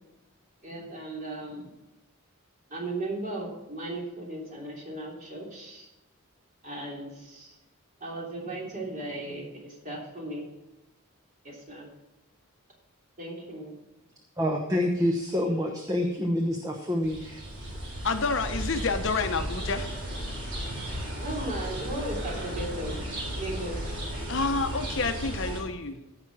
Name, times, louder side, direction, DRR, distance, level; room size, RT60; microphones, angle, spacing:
voice 1, 0.6-1.7 2.7-5.9 6.6-7.6 8.0-10.5 11.4-11.9 13.2-13.7 21.1-23.0 23.4-24.0, right 1 dB, 35° right, -2 dB, 3.2 m, -36 dB
voice 2, 14.4-17.7, left 1 dB, 15° right, 2 dB, 0.9 m, -27 dB
sound 1, 17.0-25.6, equal, 55° right, 4.5 m, -35 dB
voice 3, 18.0-19.9 24.3-26.2, left 4 dB, 55° left, 8 dB, 0.8 m, -29 dB
15.5 x 6.0 x 4.7 m, 0.98 s
head